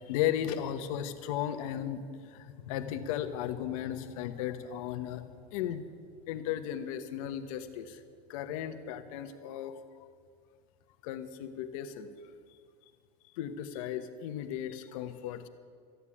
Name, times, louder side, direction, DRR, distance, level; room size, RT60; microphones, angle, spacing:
voice 1, 0.0-5.8 6.3-8.0 8.3-9.8 11.0-12.1 13.3-15.5, left 10 dB, 70° left, 9 dB, 1.2 m, -35 dB
14.0 x 9.7 x 8.6 m, 2.1 s
supercardioid pair, 165°, 18 cm